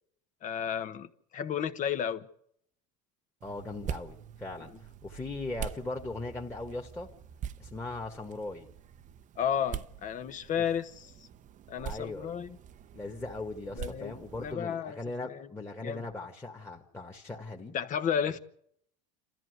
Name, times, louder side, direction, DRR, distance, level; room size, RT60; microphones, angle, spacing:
voice 1, 0.4-2.3 9.4-11.1 11.7-12.6 13.7-15.5 15.8-16.1 17.7-18.4, left 8 dB, 40° left, 1.2 m, -33 dB
voice 2, 3.4-4.7 5.0-7.1 7.6-8.7 10.5-10.6 11.8-12.3 12.9-17.8, left 2 dB, 15° left, 1.9 m, -39 dB
sound 1, 3.4-14.5, right 9 dB, 35° right, 0.8 m, -44 dB
27.5 x 14.0 x 8.2 m
supercardioid pair, 110°, 21 cm